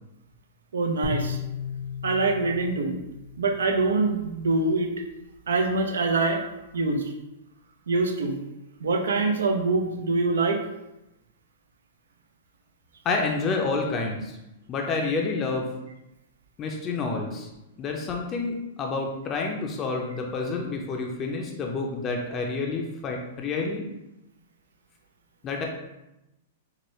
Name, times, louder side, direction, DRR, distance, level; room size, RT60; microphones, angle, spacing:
voice 1, 0.7-1.4 2.0-2.9 3.4-4.9 5.5-6.4 6.7-7.0 7.9-8.3 8.8-10.6, right 3 dB, 90° right, 4 dB, 0.6 m, -24 dB
sound 1, 1.0-4.3, left 5 dB, 50° right, 0.8 m, -35 dB
voice 2, 13.0-14.4 14.7-15.7 16.6-17.5 17.8-23.8 25.4-25.7, left 3 dB, 30° left, 1 dB, 0.5 m, -29 dB
4.7 x 2.1 x 3.1 m, 0.92 s
hypercardioid pair, 130°, 0 cm